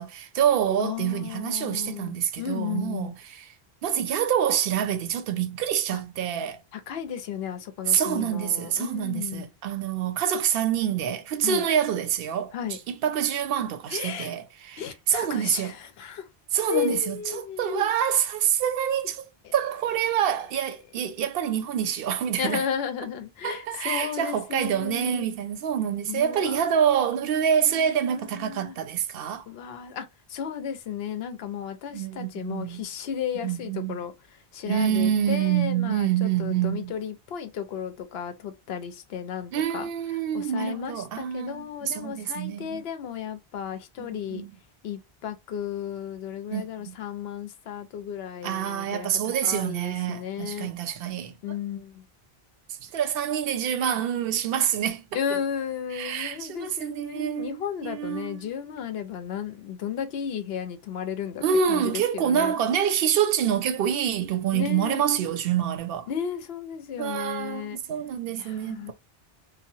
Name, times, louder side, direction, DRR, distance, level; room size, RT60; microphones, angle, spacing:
voice 1, 0.0-3.5 3.8-6.6 7.9-15.7 16.5-19.2 19.5-22.6 23.4-29.5 31.9-32.9 33.4-34.0 34.7-36.9 39.5-42.8 44.0-44.5 46.5-47.0 48.4-51.4 52.8-55.0 55.9-58.5 61.4-66.1 67.0-68.9, right 9 dB, 70° right, 0.7 m, -26 dB
voice 2, 0.8-3.1 5.9-6.0 6.7-9.5 11.4-11.6 12.5-12.8 13.9-14.3 14.8-16.3 16.7-17.9 19.4-19.5 21.2-21.3 22.4-25.3 26.1-26.6 27.6-28.8 29.5-34.1 34.5-39.9 40.3-44.4 44.8-50.7 51.4-52.0 55.1-61.4 61.7-62.5 64.5-65.0 66.1-67.8 68.4-68.9, left 8 dB, 75° left, 0.8 m, -34 dB
2.9 x 2.0 x 2.7 m
omnidirectional pair, 1.1 m